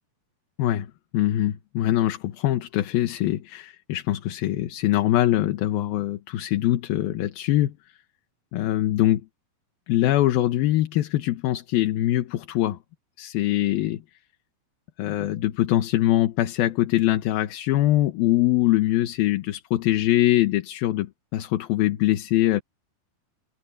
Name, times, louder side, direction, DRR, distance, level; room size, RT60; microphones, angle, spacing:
voice 1, 0.6-7.7 8.5-9.2 9.9-12.8 13.2-14.0 15.0-22.6, left 14 dB, 75° left, 2.9 m, -23 dB
omnidirectional pair, 4.5 m